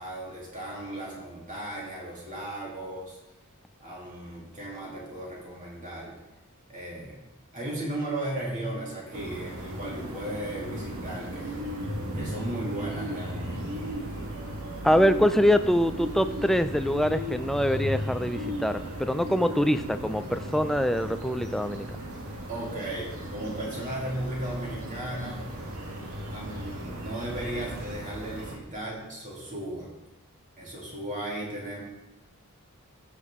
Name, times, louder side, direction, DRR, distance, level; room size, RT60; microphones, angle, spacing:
voice 1, 0.0-3.2 3.8-6.1 6.7-7.2 7.5-11.6 12.1-13.8 19.3-19.4 22.5-25.4 26.3-29.9 30.6-31.8, right 1 dB, 35° right, -4 dB, 2.7 m, -36 dB
sound 1, 9.1-28.6, equal, 75° right, 1.8 m, -36 dB
voice 2, 14.8-21.9, equal, ahead, 10 dB, 0.4 m, -24 dB
16.0 x 6.6 x 3.6 m, 0.97 s
head